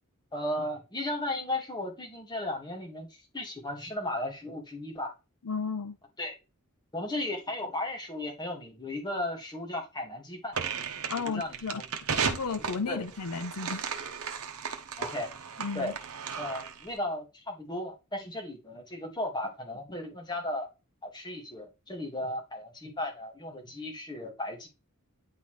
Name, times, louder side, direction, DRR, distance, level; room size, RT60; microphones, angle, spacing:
voice 1, 0.3-5.1 6.2-6.3 6.9-10.6 11.2-11.8 12.9-13.0 15.0-15.3 15.7-15.9 16.4-20.7 21.0-24.7, left 1 dB, 20° left, 1.9 m, -35 dB
voice 2, 5.4-5.9 11.1-11.8 12.1-13.9 15.6-15.9, left 5 dB, 85° left, 0.7 m, -34 dB
sound 1, 10.5-16.9, right 6 dB, 75° right, 0.9 m, -35 dB
9.6 x 4.0 x 3.2 m
head